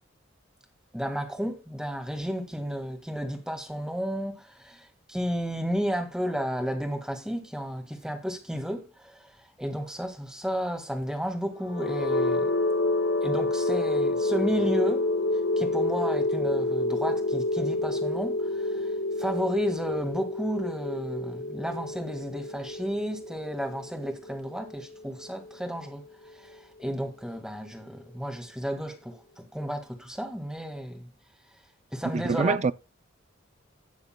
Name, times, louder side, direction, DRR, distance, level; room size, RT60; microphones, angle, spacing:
voice 1, 0.9-12.5 13.2-15.1 15.6-18.9 19.2-26.0 26.3-31.1 31.9-32.6, equal, 5° right, 1.8 m, -32 dB
sound 1, 11.6-25.5, left 2 dB, 85° left, 1.6 m, -28 dB
voice 2, 32.1-32.7, right 4 dB, 35° right, 0.4 m, -25 dB
18.0 x 6.7 x 2.2 m
head